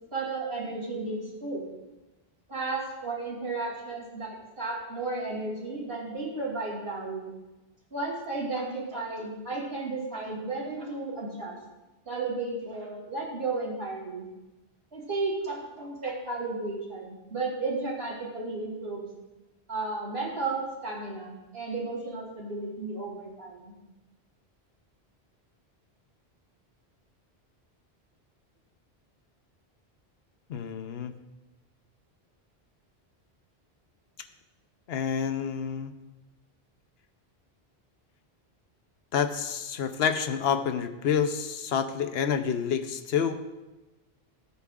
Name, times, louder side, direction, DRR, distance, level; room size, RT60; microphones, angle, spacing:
voice 1, 0.1-1.6 2.5-7.3 7.9-11.6 12.1-14.3 14.9-19.1 19.7-23.7, right 3 dB, 75° right, -3 dB, 2.9 m, -33 dB
voice 2, 30.5-31.1 34.9-35.9 39.1-43.4, left 7 dB, 75° left, 9 dB, 0.9 m, -28 dB
16.5 x 8.5 x 2.5 m, 1.1 s
omnidirectional pair, 1.1 m